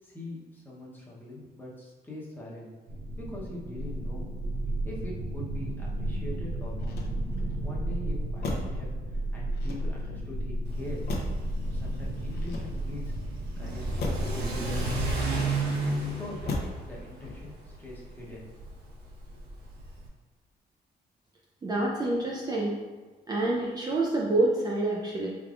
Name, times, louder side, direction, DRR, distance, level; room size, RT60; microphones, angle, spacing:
voice 1, 0.0-2.7 3.1-4.3 4.8-7.0 7.6-11.1 11.7-13.1 13.6-15.2 15.8-16.6 16.8-18.5, left 1 dB, 10° left, -4 dB, 0.8 m, -43 dB
sound 1, 2.9-15.1, right 1 dB, 60° right, 0.8 m, -33 dB
Motor vehicle (road), 6.7-7.6 8.4-8.9 9.5-10.2 11.1-11.5 12.3-13.1 14.0-14.4 15.3-15.9 16.5-16.9 17.2-17.7, left 2 dB, 70° left, 0.7 m, -37 dB
Car / Accelerating revving vroom, 10.7-20.1, right 2 dB, 80° right, 1.0 m, -34 dB
voice 2, 21.6-22.8 23.3-25.3, right 2 dB, 25° right, -4 dB, 0.4 m, -27 dB
4.4 x 3.5 x 2.4 m, 1.4 s
cardioid pair, 155°, 17 cm